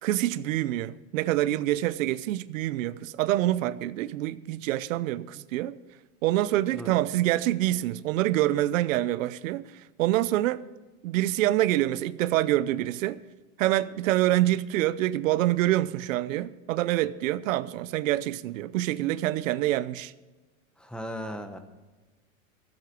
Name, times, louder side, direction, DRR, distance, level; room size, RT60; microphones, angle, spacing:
voice 1, 0.0-5.8 6.2-9.7 10.0-10.6 11.0-13.2 13.6-20.1, right 15 dB, 75° right, 0.8 m, -26 dB
voice 2, 20.8-21.6, equal, ahead, 1.0 m, -37 dB
14.5 x 8.1 x 6.8 m
supercardioid pair, 140°, 40 cm